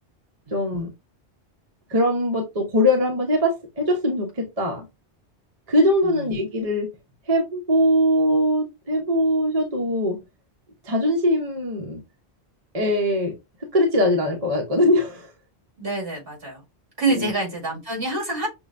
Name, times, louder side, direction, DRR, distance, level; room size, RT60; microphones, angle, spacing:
voice 1, 0.5-0.9 1.9-4.8 5.7-6.9 7.3-10.2 10.8-12.0 12.7-13.3 13.7-15.3 17.1-17.3, left 1 dB, 35° right, 0.8 m, -21 dB
voice 2, 15.8-16.6 17.0-18.5, right 2 dB, 55° right, 2.3 m, -26 dB
6.2 x 2.1 x 2.4 m
omnidirectional pair, 1.1 m